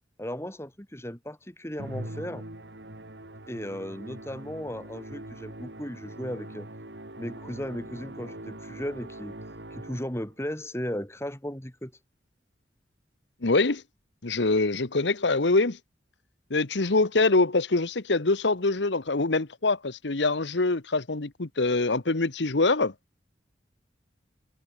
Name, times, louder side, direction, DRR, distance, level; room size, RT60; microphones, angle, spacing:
voice 1, 0.2-2.4 3.5-6.7 7.2-9.3 9.7-11.9, equal, 15° left, 4.3 m, -36 dB
Musical instrument, 1.8-10.3, right 1 dB, 80° right, 3.7 m, -42 dB
voice 2, 13.4-13.8 14.2-15.8 16.5-22.9, left 3 dB, 85° left, 1.2 m, -24 dB
head